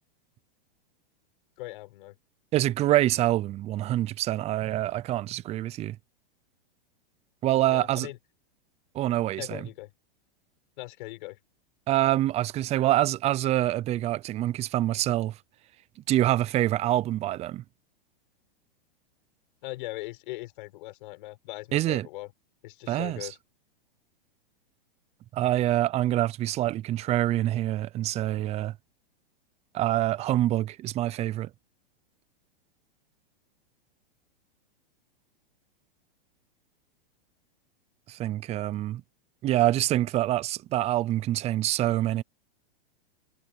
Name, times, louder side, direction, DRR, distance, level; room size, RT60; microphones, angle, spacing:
voice 1, 1.6-2.2 7.7-8.2 9.4-9.9 10.8-11.4 19.6-22.3 22.6-23.4, left 19 dB, 55° left, 6.2 m, -40 dB
voice 2, 2.5-6.0 7.4-8.1 8.9-9.7 11.9-15.4 16.1-17.6 21.7-22.1 22.9-23.3 25.3-28.7 29.7-31.5 38.1-39.0 39.4-42.2, right 14 dB, 20° right, 0.6 m, -26 dB
hypercardioid pair, 140°, 29 cm